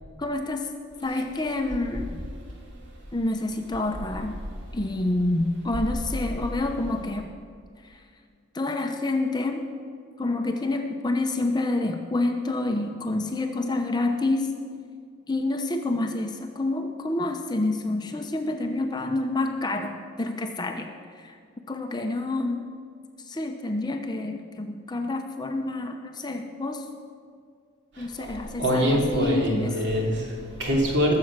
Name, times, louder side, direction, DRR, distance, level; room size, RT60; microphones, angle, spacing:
voice 1, 0.2-0.7 1.0-2.2 3.1-4.4 4.7-7.3 7.8-8.0 8.5-9.7 10.2-14.5 15.3-21.4 21.7-22.6 23.2-26.9 28.0-29.8, left 2 dB, 20° left, 5 dB, 0.7 m, -28 dB
voice 2, 28.0-28.3 28.6-31.2, equal, 55° right, -2 dB, 3.1 m, -24 dB
20.0 x 7.7 x 6.1 m, 2.1 s
head